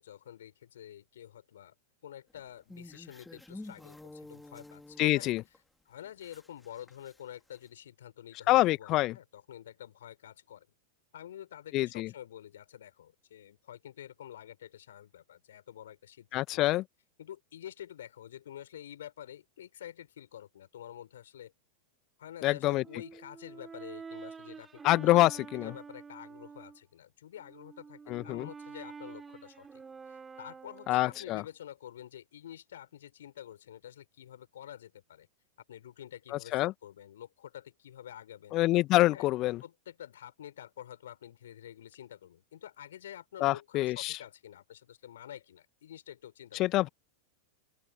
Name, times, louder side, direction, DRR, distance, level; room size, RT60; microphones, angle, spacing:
voice 1, 0.0-1.7 2.0-5.3 5.9-10.7 11.1-16.6 17.2-21.5 22.2-35.3 35.7-38.6 39.1-39.3 39.6-46.9, left 11 dB, 60° left, 5.3 m, -48 dB
sound 1, 2.3-5.6 6.0-7.2 7.5-7.6, left 2 dB, 5° left, 3.1 m, -50 dB
voice 2, 5.0-5.4 8.5-9.2 11.7-12.1 16.3-16.8 22.4-22.8 24.8-25.7 28.1-28.5 30.9-31.4 36.3-36.7 38.5-39.6 43.4-44.2 46.5-46.9, left 17 dB, 35° left, 1.9 m, -26 dB
Brass instrument, 22.8-26.8 27.3-31.4, right 5 dB, 15° right, 3.9 m, -48 dB
open air
figure-of-eight pair, 90°, 0 cm